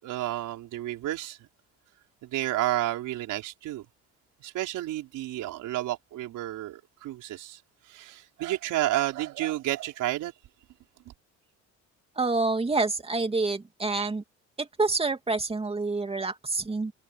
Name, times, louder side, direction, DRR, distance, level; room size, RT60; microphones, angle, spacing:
voice 1, 0.0-1.5 2.2-3.8 4.4-10.3 11.0-11.1, right 14 dB, 75° right, 4.9 m, -31 dB
voice 2, 12.2-14.2 14.6-16.9, right 3 dB, 20° right, 2.6 m, -27 dB
cardioid pair, 110°, 31 cm